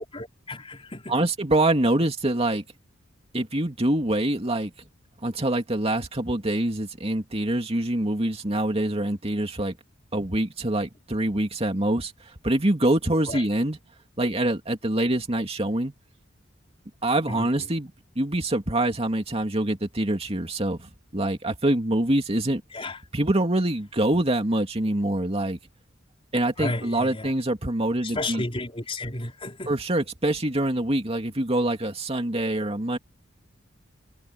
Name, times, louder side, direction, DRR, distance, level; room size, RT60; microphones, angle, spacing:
voice 1, 0.1-1.3 2.0-2.1 13.3-13.5 17.3-17.7 22.7-23.0 26.6-27.3 28.0-29.7, left 2 dB, 30° left, 4.5 m, -33 dB
voice 2, 1.1-2.6 3.3-4.7 5.2-9.7 10.1-13.8 14.2-15.9 17.0-17.9 18.2-22.6 23.1-25.6 26.3-28.4 29.7-33.0, right 1 dB, 30° right, 2.6 m, -25 dB
head